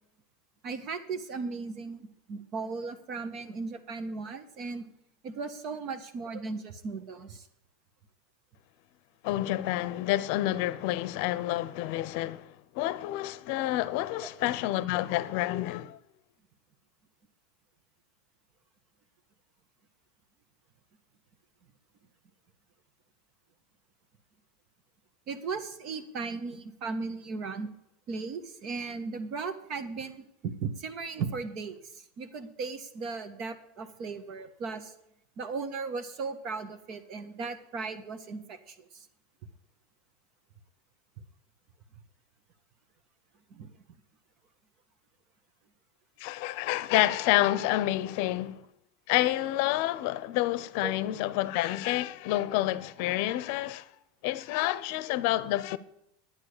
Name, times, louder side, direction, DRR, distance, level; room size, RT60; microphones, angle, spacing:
voice 1, 0.6-4.9 5.2-7.5 14.2-14.3 25.3-27.7 28.1-34.9 35.4-39.0 43.5-43.7 50.8-50.9, right 4 dB, 45° right, 1.4 m, -37 dB
voice 2, 9.2-16.0 46.2-48.6 49.1-53.9 54.2-55.8, left 15 dB, 60° left, 0.7 m, -29 dB
10.5 x 9.3 x 6.8 m
supercardioid pair, 135°, 0 cm